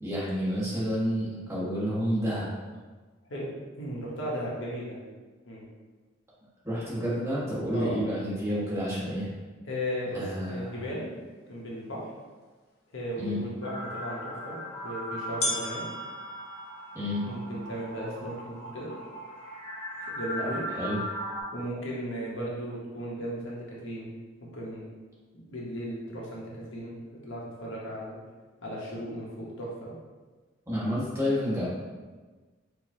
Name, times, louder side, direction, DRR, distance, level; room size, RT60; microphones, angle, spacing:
voice 1, 0.0-2.5 6.6-9.3 10.1-10.8 13.2-13.4 16.9-17.3 20.7-21.0 30.7-31.7, equal, 15° right, -8 dB, 1.0 m, -29 dB
voice 2, 3.8-5.0 5.5-5.7 7.7-8.0 9.6-11.1 11.5-12.1 12.9-15.9 17.2-18.9 20.0-20.6 21.5-24.1 24.5-24.8 25.3-28.2 28.6-29.9, equal, 80° left, -4 dB, 0.9 m, -36 dB
sound 1, 11.5-11.6 12.3-12.4 14.1-14.2 15.4-21.0, left 1 dB, 55° left, 0.6 m, -39 dB
sound 2, 13.6-21.4, equal, 15° left, 0.8 m, -38 dB
4.6 x 2.2 x 2.7 m, 1.3 s
head